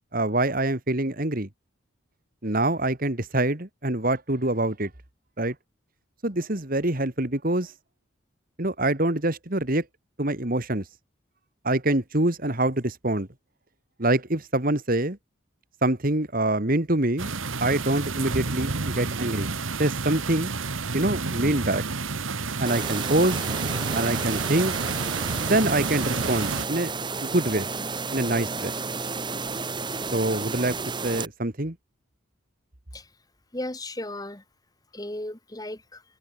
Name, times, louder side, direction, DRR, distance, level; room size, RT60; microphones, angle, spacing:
voice 1, 0.1-1.5 2.4-4.9 5.4-5.5 6.2-7.7 8.6-9.9 10.2-10.8 11.6-13.3 14.0-15.2 15.8-17.3 17.6-19.5 19.8-20.5 20.9-21.8 22.6-23.4 23.9-24.7 25.4-26.9 27.2-27.7 28.1-28.8 30.1-30.8 31.0-31.8, right 1 dB, 45° right, 2.0 m, -25 dB
sound 1, 17.2-26.7, right 4 dB, 75° right, 1.6 m, -30 dB
sound 2, 22.7-31.3, right 4 dB, 20° right, 1.4 m, -32 dB
voice 2, 33.5-34.4 34.9-36.0, left 1 dB, 20° left, 1.8 m, -35 dB
open air
head